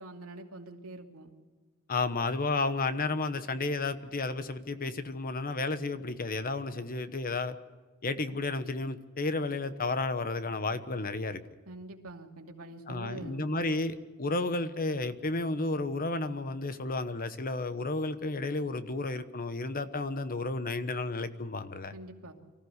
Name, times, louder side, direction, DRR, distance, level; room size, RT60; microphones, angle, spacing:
voice 1, 0.0-1.3 11.7-13.5 21.9-22.3, right 2 dB, 80° right, 2 dB, 2.7 m, -45 dB
voice 2, 1.9-7.6 8.0-11.4 12.9-21.9, left 3 dB, 40° left, 11 dB, 1.1 m, -32 dB
24.5 x 15.0 x 8.1 m, 1.3 s
head